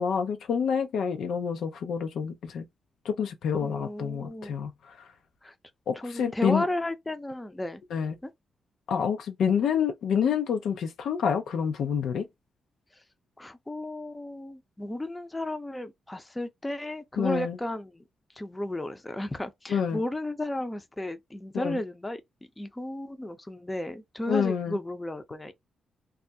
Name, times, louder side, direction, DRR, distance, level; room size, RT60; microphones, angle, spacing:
voice 1, 0.0-2.7 3.1-4.7 5.9-6.6 7.9-8.1 8.9-12.3 17.2-17.6 19.7-20.0 21.5-21.8 24.3-24.8, left 7 dB, 80° left, 0.4 m, -27 dB
voice 2, 3.6-4.5 5.4-5.5 6.0-7.8 8.2-8.3 13.4-18.0 18.4-22.2 22.6-25.5, left 1 dB, 15° left, 0.5 m, -34 dB
2.3 x 2.0 x 2.6 m
cardioid pair, 65°, 0 cm